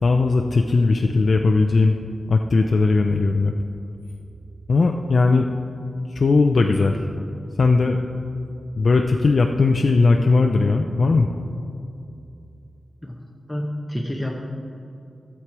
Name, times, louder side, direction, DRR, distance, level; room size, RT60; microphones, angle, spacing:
voice 1, 0.0-1.9 2.3-3.5 4.7-5.5 6.1-7.1 7.6-8.0 8.8-11.3, left 3 dB, 50° left, 3 dB, 0.5 m, -18 dB
voice 2, 13.5-14.4, equal, ahead, -2 dB, 0.8 m, -28 dB
13.0 x 7.4 x 4.7 m, 2.6 s
wide cardioid pair, 115°, 0 cm